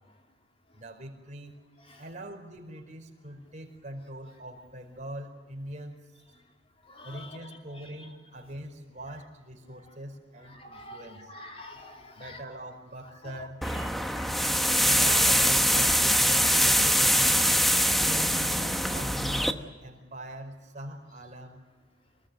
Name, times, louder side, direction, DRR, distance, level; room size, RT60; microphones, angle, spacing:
voice 1, 0.7-1.6 2.0-6.1 7.0-11.3 12.2-13.6 14.8-17.3 18.0-21.6, right 1 dB, 40° right, 1 dB, 4.9 m, -42 dB
voice 2, 6.9-7.4 10.5-12.4 13.2-13.5 13.7-14.5, left 1 dB, 30° left, 2 dB, 3.6 m, -46 dB
sound 1, 13.6-19.5, equal, ahead, 1.1 m, -23 dB
26.5 x 20.0 x 9.3 m, 1.3 s
head